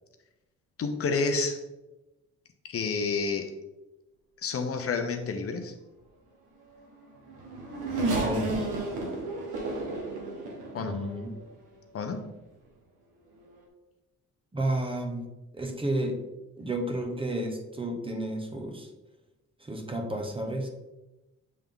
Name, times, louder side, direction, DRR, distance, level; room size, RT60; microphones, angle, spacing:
voice 1, 0.8-1.6 2.6-3.5 4.4-5.7 10.7-11.0 11.9-12.3, left 4 dB, 50° left, 6 dB, 0.8 m, -29 dB
Race car auto racing / Accelerating revving vroom, 6.9-11.5 12.2-12.3 13.4-13.6, right 2 dB, 80° right, 1.6 m, -32 dB
voice 2, 8.2-8.6 10.8-11.3 14.5-15.3 15.5-16.2 16.6-18.9 19.6-20.7, right 1 dB, 15° right, 2 dB, 1.1 m, -31 dB
7.6 x 3.4 x 3.8 m, 1.0 s
cardioid pair, 90°, 30 cm